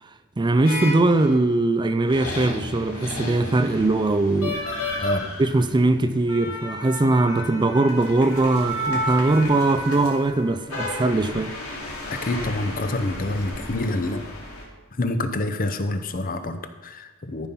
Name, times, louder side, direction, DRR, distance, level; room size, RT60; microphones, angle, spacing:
voice 1, 0.4-4.6 5.4-11.5, right 2 dB, 20° right, 0.4 m, -21 dB
sound 1, 0.6-1.5 2.1-14.6, equal, 80° left, 2.7 m, -32 dB
voice 2, 5.0-5.3 12.1-14.3 14.9-17.5, left 2 dB, 40° left, 0.8 m, -27 dB
13.5 x 5.7 x 5.3 m
head